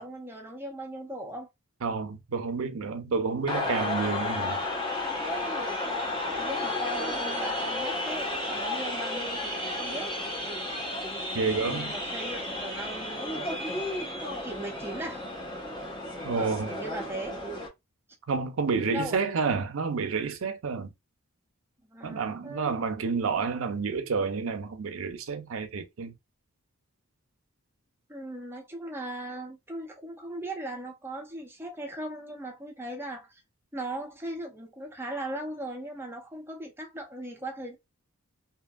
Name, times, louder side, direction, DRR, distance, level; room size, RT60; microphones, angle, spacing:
voice 1, 0.0-1.5 5.8-10.1 10.8-10.9 11.5-13.4 14.1-15.2 16.3-17.4 18.9-19.2 21.9-22.8 28.1-33.4 33.7-37.8, right 1 dB, 10° right, 0.5 m, -38 dB
voice 2, 1.8-4.6 11.3-11.9 16.2-16.7 18.3-20.9 22.0-26.1, right 5 dB, 70° right, 0.5 m, -29 dB
sound 1, 3.5-17.7, left 2 dB, 20° left, 0.8 m, -32 dB
2.8 x 2.5 x 2.3 m
head